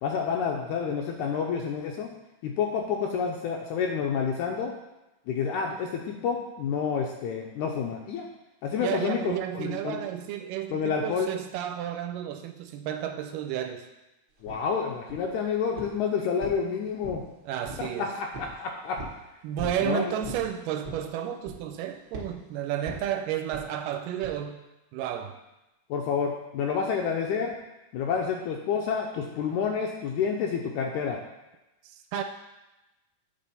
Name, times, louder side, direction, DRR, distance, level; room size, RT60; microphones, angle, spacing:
voice 1, 0.0-2.1 2.4-4.7 5.3-8.3 8.6-10.0 10.7-11.3 14.4-17.2 17.8-19.0 19.8-20.1 25.9-27.5 27.9-31.2, left 6 dB, 80° left, 1 dB, 1.8 m, -29 dB
voice 2, 8.8-13.8 17.4-18.1 19.4-24.6 24.9-25.4 32.1-32.2, right 10 dB, 80° right, 6 dB, 2.1 m, -32 dB
sound 1, 14.5-14.6 15.1-15.4 15.8-16.0 16.4-17.3 17.6-17.9 18.3-18.6 19.0-19.2 19.6-19.8 20.2-20.5 20.8-21.1 21.4-21.8 22.1-22.3 22.9-23.1 23.5-23.7 24.2-24.4, right 2 dB, 55° right, 1.3 m, -39 dB
8.4 x 3.4 x 5.4 m, 0.99 s
omnidirectional pair, 3.9 m